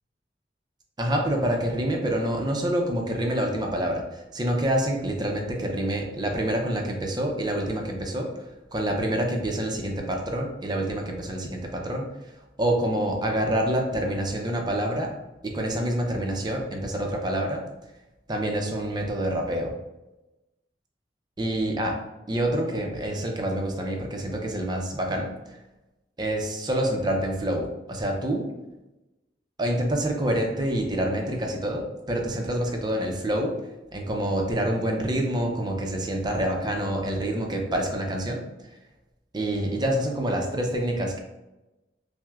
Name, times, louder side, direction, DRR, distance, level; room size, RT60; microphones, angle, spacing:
voice 1, 1.0-8.3 8.7-12.1 12.6-15.1 15.4-17.6 18.3-19.7 21.4-21.9 22.3-25.3 26.2-28.5 29.6-33.5 33.9-38.4 39.3-41.2, right 1 dB, 25° right, 1 dB, 0.5 m, -27 dB
5.7 x 2.1 x 2.3 m, 1.0 s
head